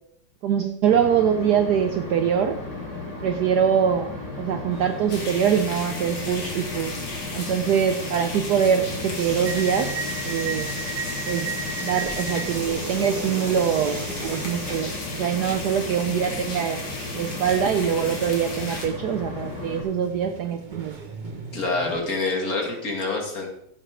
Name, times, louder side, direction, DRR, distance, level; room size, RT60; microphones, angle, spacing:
voice 1, 0.4-2.6 3.2-4.1 4.4-6.9 7.3-9.9 10.2-10.7 11.3-11.5 11.8-16.8 17.1-21.0, right 8 dB, 70° right, 7 dB, 1.0 m, -23 dB
sound 1, 0.8-19.8, left 3 dB, 15° left, 5.0 m, -35 dB
sound 2, 4.7-22.0, right 3 dB, 30° right, 0.9 m, -37 dB
sound 3, 5.1-18.9, left 2 dB, 70° left, 2.6 m, -36 dB
voice 2, 21.5-23.5, left 3 dB, 45° left, 2 dB, 2.2 m, -27 dB
15.0 x 7.4 x 3.3 m, 0.75 s
omnidirectional pair, 2.2 m